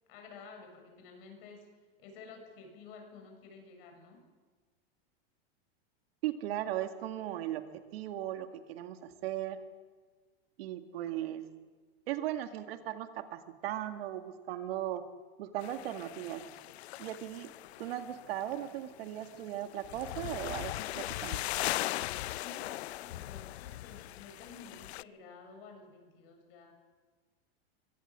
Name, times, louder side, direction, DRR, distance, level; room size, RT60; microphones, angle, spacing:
voice 1, 0.1-1.7 2.0-4.2 22.4-26.7, left 4 dB, 65° left, 4 dB, 7.2 m, -52 dB
voice 2, 6.2-9.6 10.6-11.5 12.1-15.1 15.4-16.5 17.0-17.5 17.8-21.4, right 12 dB, 70° right, 7 dB, 2.1 m, -37 dB
sound 1, 15.6-25.0, left 16 dB, 90° left, 0.6 m, -39 dB
23.5 x 17.0 x 7.5 m, 1.4 s
supercardioid pair, 140°, 31 cm